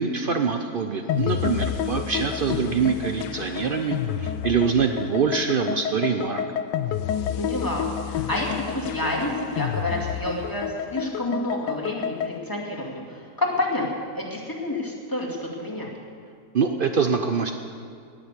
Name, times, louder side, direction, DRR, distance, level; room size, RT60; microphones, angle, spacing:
voice 1, 0.0-6.4 16.5-17.5, right 5 dB, 80° right, 6 dB, 0.4 m, -24 dB
sound 1, 1.1-12.4, left 9 dB, 90° left, 1.3 m, -29 dB
voice 2, 7.4-13.9 14.1-15.9, left 1 dB, 10° left, -3 dB, 2.2 m, -29 dB
19.5 x 6.7 x 8.1 m, 2.2 s
omnidirectional pair, 1.8 m